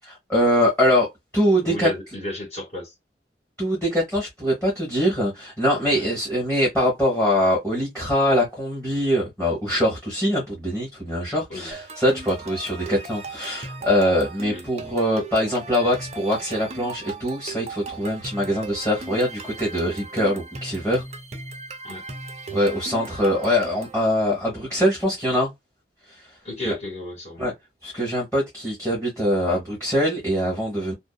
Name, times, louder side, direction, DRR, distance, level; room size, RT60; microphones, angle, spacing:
voice 1, 0.0-1.1 1.3-1.9 3.6-21.0 22.5-25.5 26.6-26.7 27.4-27.5 27.8-30.9, equal, 5° left, 1.1 m, -23 dB
voice 2, 1.6-2.9 5.9-6.1 11.5-11.7 12.9-13.0 14.5-14.6 21.8-22.1 26.4-27.4, left 1 dB, 40° left, 1.5 m, -33 dB
sound 1, 11.7-24.0, right 3 dB, 35° right, 0.5 m, -38 dB
2.6 x 2.2 x 2.2 m
head